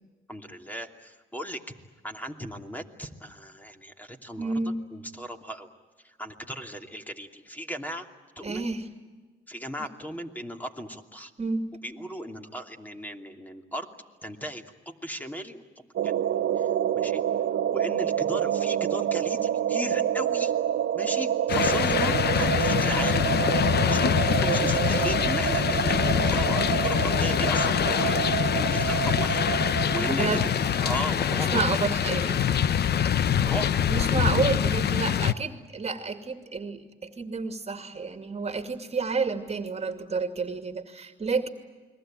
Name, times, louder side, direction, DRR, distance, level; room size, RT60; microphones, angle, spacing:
voice 1, 0.3-1.6 2.0-4.5 4.9-5.7 6.0-8.1 8.4-8.7 9.5-11.3 11.8-13.9 14.2-16.3 16.6-16.7 16.9-17.2 17.5-20.5 20.9-23.3 23.8-28.2 28.7-29.4 29.9-31.6 33.4-34.3, equal, 10° left, 5 dB, 2.9 m, -36 dB
voice 2, 4.4-4.8 8.4-8.9 9.8-9.9 11.4-11.7 30.0-30.4 31.3-32.4 33.9-41.5, right 4 dB, 30° right, 8 dB, 2.5 m, -30 dB
sound 1, 16.0-31.4, right 10 dB, 70° right, 1.2 m, -28 dB
sound 2, 21.5-35.3, left 8 dB, 55° left, 0.9 m, -24 dB
29.5 x 22.0 x 9.0 m, 1.3 s
cardioid pair, 90°, 20 cm